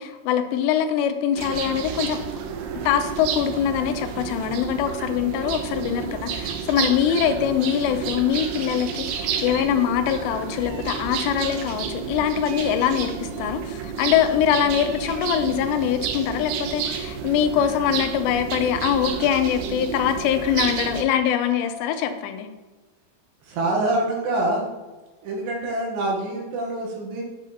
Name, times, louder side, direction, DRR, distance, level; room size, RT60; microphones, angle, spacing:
voice 1, 0.0-2.2 2.9-22.5, left 9 dB, 80° left, 6 dB, 2.6 m, -23 dB
sound 1, 1.4-21.0, right 7 dB, 90° right, 2.3 m, -30 dB
Meow, 10.5-11.1 12.4-13.3 14.5-15.7, right 2 dB, 60° right, 3.2 m, -45 dB
voice 2, 23.4-24.7 25.2-27.2, right 2 dB, 75° right, -1 dB, 3.1 m, -25 dB
8.3 x 5.0 x 2.8 m, 1.2 s
omnidirectional pair, 5.3 m